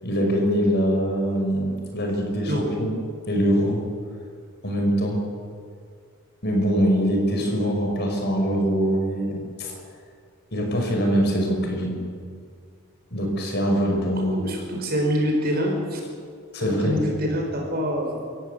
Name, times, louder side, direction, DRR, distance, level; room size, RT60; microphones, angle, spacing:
voice 1, 0.0-2.9 3.3-3.8 4.6-5.2 6.4-9.7 10.5-12.0 13.1-14.4 16.5-17.0, equal, 50° left, 2 dB, 5.7 m, -23 dB
voice 2, 14.3-16.0 16.6-18.2, equal, 45° right, 1 dB, 5.3 m, -25 dB
27.0 x 16.5 x 8.4 m, 2.1 s
head